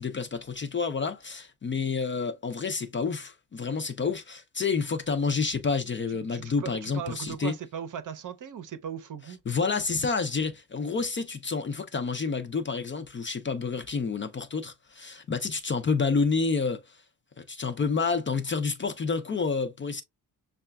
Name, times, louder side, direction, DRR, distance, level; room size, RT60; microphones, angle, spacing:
voice 1, 0.0-7.5 9.5-17.0 17.4-20.0, left 4 dB, 30° left, 0.4 m, -29 dB
voice 2, 6.3-9.4, right 8 dB, 50° right, 0.7 m, -38 dB
6.6 x 2.3 x 2.2 m
cardioid pair, 125°, 40 cm